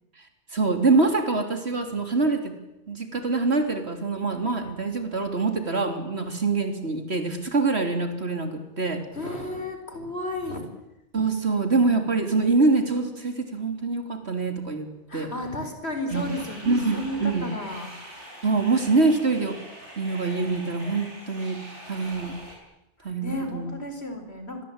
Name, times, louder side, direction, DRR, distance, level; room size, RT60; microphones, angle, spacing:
voice 1, 0.5-2.5 2.9-9.0 11.1-15.3 16.1-16.3 16.7-17.5 18.4-19.6 20.0-21.6 21.9-22.3 23.0-23.7, right 3 dB, 65° right, 6 dB, 3.6 m, -25 dB
voice 2, 9.1-10.6 15.1-17.9 23.0-24.6, left 2 dB, 65° left, 6 dB, 5.2 m, -33 dB
sound 1, 16.1-22.6, right 1 dB, 80° right, 7.1 m, -43 dB
27.0 x 22.0 x 9.0 m, 0.90 s
omnidirectional pair, 1.2 m